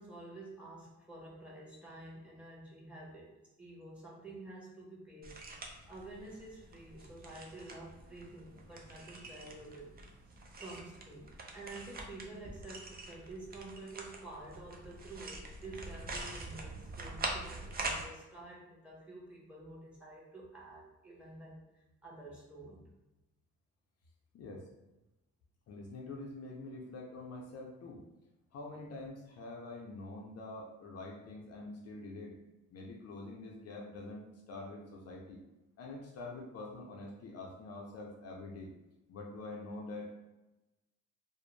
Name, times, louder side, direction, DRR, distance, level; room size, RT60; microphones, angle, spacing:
voice 1, 0.0-9.9 10.6-21.6 22.0-22.9, right 2 dB, 5° right, -4 dB, 0.9 m, -49 dB
sound 1, 5.2-18.0, right 2 dB, 30° right, 0.5 m, -44 dB
voice 2, 24.3-24.7 25.7-28.0 28.5-32.4 32.7-35.4 35.8-38.7 39.1-40.2, left 2 dB, 55° left, 0 dB, 0.5 m, -46 dB
2.4 x 2.0 x 3.1 m, 1.0 s
cardioid pair, 90°, 30 cm